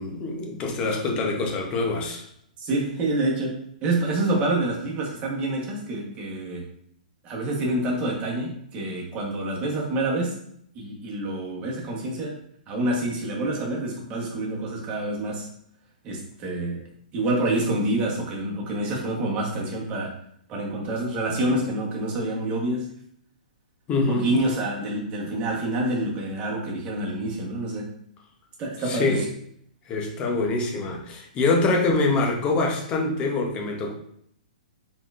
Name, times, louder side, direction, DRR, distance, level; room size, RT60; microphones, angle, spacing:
voice 1, 0.0-2.2 23.9-24.3 28.9-29.3 29.9-33.9, left 3 dB, 20° left, 1 dB, 0.8 m, -25 dB
voice 2, 2.6-6.6 7.2-10.4 10.7-12.4 12.7-15.5 16.0-16.8 17.1-20.1 20.5-22.9 24.1-27.9 28.6-29.2, right 1 dB, 25° right, -3 dB, 1.2 m, -27 dB
4.3 x 3.8 x 2.5 m, 0.70 s
hypercardioid pair, 150°, 5 cm